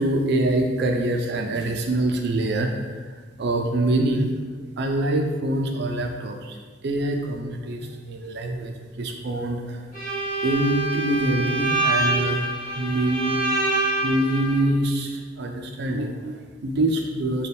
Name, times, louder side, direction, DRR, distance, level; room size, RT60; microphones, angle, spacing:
voice 1, 0.0-4.3 4.6-9.9 10.4-12.5 12.7-13.4 13.7-17.5, right 1 dB, 55° right, 3 dB, 0.4 m, -25 dB
Bowed string instrument, 9.9-14.6, right 2 dB, 45° left, 1.2 m, -25 dB
3.4 x 2.3 x 4.1 m, 1.4 s
head